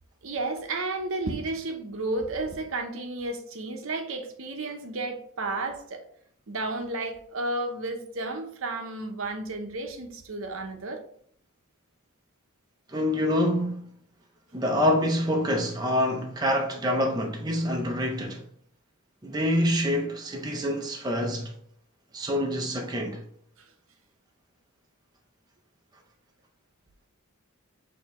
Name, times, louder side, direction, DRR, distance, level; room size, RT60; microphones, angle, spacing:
voice 1, 0.2-6.0 6.5-11.0, right 2 dB, 65° right, 0.7 m, -32 dB
voice 2, 12.9-13.8 14.5-18.4 19.2-21.5 22.1-23.2, equal, 20° right, 0.5 m, -26 dB
6.5 x 2.7 x 3.0 m
head